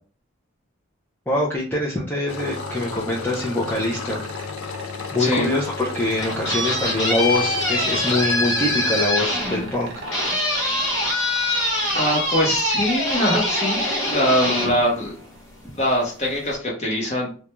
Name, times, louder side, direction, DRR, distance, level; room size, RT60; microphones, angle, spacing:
voice 1, 1.3-4.2 5.1-9.9, left 1 dB, 10° left, -6 dB, 0.4 m, -24 dB
Engine, 2.3-9.1, left 6 dB, 80° left, 0.3 m, -33 dB
sound 1, 2.4-14.6 16.3-16.4, right 5 dB, 60° right, 0.5 m, -39 dB
voice 2, 5.2-5.5 11.9-15.1 15.8-17.3, equal, 30° left, -2 dB, 0.8 m, -22 dB
sound 2, 5.9-15.6, left 1 dB, 60° left, 1.1 m, -24 dB
2.4 x 2.2 x 2.9 m, 0.41 s
head